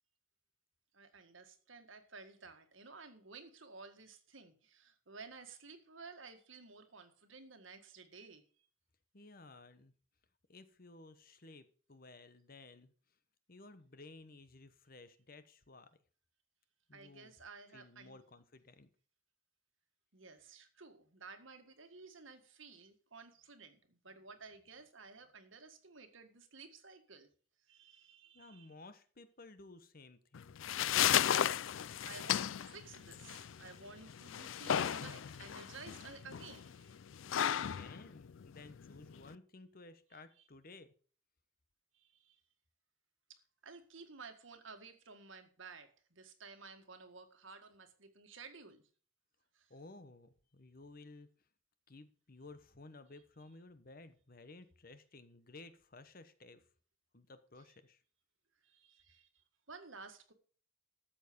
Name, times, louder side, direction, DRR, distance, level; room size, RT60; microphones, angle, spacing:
voice 1, 0.9-8.7 16.9-18.2 20.1-27.3 27.7-28.7 31.2-37.0 40.1-40.4 41.9-42.4 43.3-48.8 49.5-49.7 57.7-57.8 58.6-60.3, right 4 dB, 75° right, 1.9 m, -54 dB
voice 2, 9.1-9.9 10.5-12.9 13.5-15.9 16.9-17.3 17.7-18.9 28.3-30.6 37.5-40.9 49.7-51.3 51.9-56.6 57.1-58.0, left 3 dB, 45° left, 1.1 m, -56 dB
sound 1, 30.3-39.3, left 10 dB, 75° left, 0.4 m, -35 dB
13.0 x 7.4 x 5.3 m
head